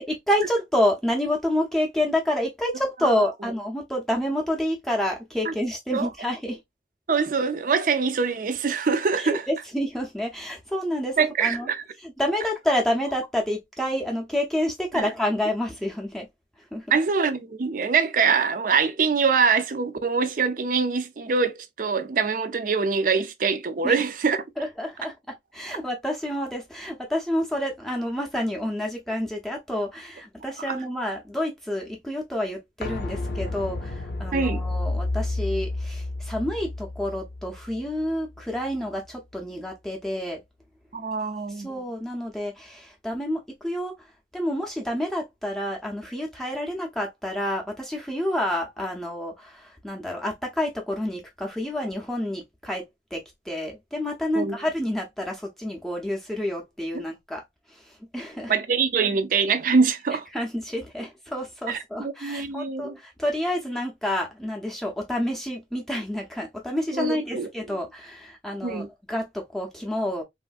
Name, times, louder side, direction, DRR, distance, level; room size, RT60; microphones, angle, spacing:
voice 1, 0.0-6.6 9.2-11.7 12.0-16.3 16.7-16.9 23.8-23.9 24.6-40.4 41.5-44.1 44.3-57.4 57.7-58.5 60.3-70.2, left 1 dB, ahead, 0.5 m, -29 dB
voice 2, 7.1-9.5 11.2-11.8 14.9-15.1 16.9-24.4 30.7-30.8 34.3-34.6 40.9-41.7 54.3-54.6 56.9-57.1 58.5-60.3 61.7-62.9 66.9-67.5 68.6-68.9, right 5 dB, 50° right, 0.4 m, -24 dB
sound 1, 32.8-38.4 38.7-38.8, left 2 dB, 60° left, 0.6 m, -31 dB
3.1 x 2.4 x 2.4 m
head